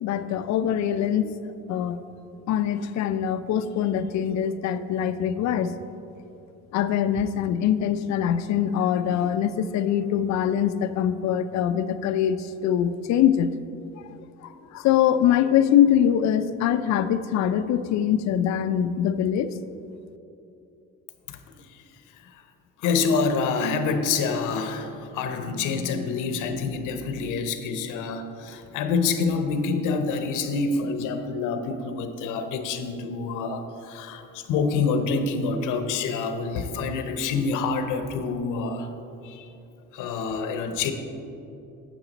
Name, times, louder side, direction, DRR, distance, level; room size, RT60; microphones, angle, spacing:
voice 1, 0.0-1.3 1.7-2.0 2.5-5.7 6.7-13.5 14.0-19.6, left 9 dB, 65° left, 12 dB, 0.5 m, -23 dB
voice 2, 22.8-38.9 39.2-39.5 39.9-40.9, left 4 dB, 85° left, 8 dB, 0.8 m, -27 dB
9.0 x 8.4 x 4.0 m, 2.8 s
cardioid pair, 120°, 30 cm